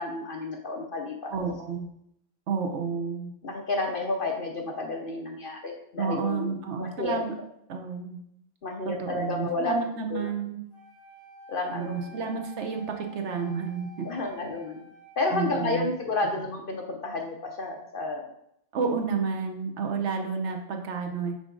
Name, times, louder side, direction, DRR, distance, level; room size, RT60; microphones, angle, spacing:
voice 1, 0.0-1.3 3.4-7.2 8.6-9.7 10.1-10.3 11.5-12.2 14.0-14.8 15.2-18.2, left 2 dB, 50° left, 2 dB, 0.7 m, -31 dB
voice 2, 1.3-1.9 2.5-3.3 6.0-7.3 7.7-8.2 8.8-10.6 11.7-14.1 15.3-15.9 18.7-21.3, right 5 dB, 65° right, 4 dB, 1.0 m, -30 dB
Wind instrument woodwind instrument, 10.7-15.8, equal, 75° left, 2.3 m, -50 dB
5.2 x 4.8 x 3.8 m, 0.76 s
omnidirectional pair, 1.4 m